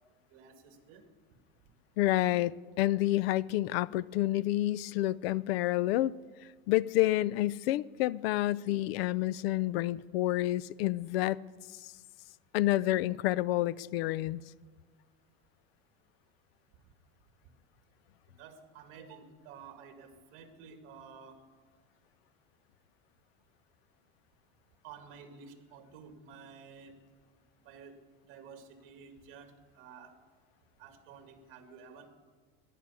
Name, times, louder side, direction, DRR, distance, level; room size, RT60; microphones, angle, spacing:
voice 1, 0.3-1.0 18.4-21.4 24.8-27.0 27.6-28.0 28.3-30.1 30.8-32.1, right 6 dB, 45° right, 5 dB, 2.1 m, -52 dB
voice 2, 2.0-2.5 2.8-6.1 6.7-11.4 11.8-11.9 12.5-14.4, left 15 dB, 90° left, 21 dB, 0.5 m, -29 dB
15.5 x 11.0 x 8.3 m, 1.5 s
cardioid pair, 165°, 29 cm